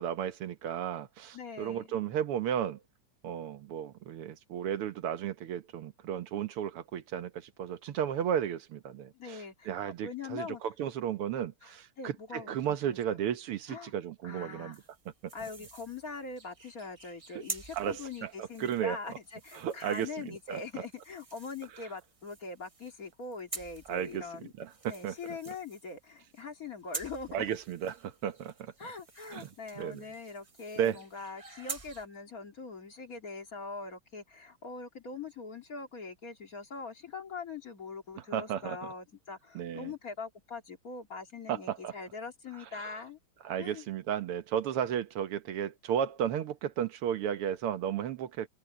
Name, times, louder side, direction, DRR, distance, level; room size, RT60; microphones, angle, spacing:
voice 1, 0.0-2.8 3.2-14.8 17.7-19.0 19.6-20.6 23.9-24.3 24.6-25.1 27.3-28.7 29.3-29.5 29.8-30.0 30.8-31.0 38.3-38.8 39.6-39.9 41.5-41.9 42.7-43.0 43.4-48.5, right 9 dB, 85° right, 2.0 m, -34 dB
voice 2, 1.3-1.9 9.1-9.7 10.0-10.6 11.6-13.2 13.7-13.9 14.2-14.8 15.3-24.5 24.9-27.5 28.8-43.2 43.6-43.9, left 4 dB, 40° left, 2.6 m, -42 dB
sound 1, 14.7-32.1, right 4 dB, 40° right, 0.5 m, -48 dB
omnidirectional pair, 2.4 m